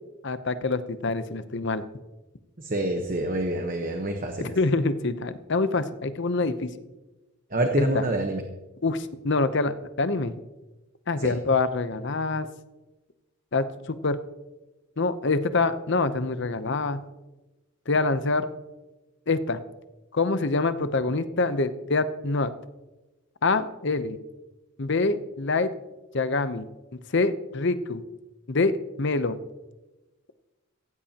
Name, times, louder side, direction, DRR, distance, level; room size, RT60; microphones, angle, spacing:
voice 1, 0.2-1.8 4.5-6.7 7.8-8.0 8.8-10.4 11.1-12.5 13.5-14.2 15.0-17.0 17.9-18.5 19.3-19.6 20.1-22.5 23.4-24.2 24.8-25.7 26.1-26.7 27.1-28.0 28.5-29.4, left 3 dB, 55° left, 12 dB, 0.8 m, -25 dB
voice 2, 2.6-4.5 7.5-8.4 11.2-11.3, right 1 dB, 40° right, 4 dB, 1.1 m, -27 dB
16.0 x 15.5 x 2.9 m, 1.1 s
head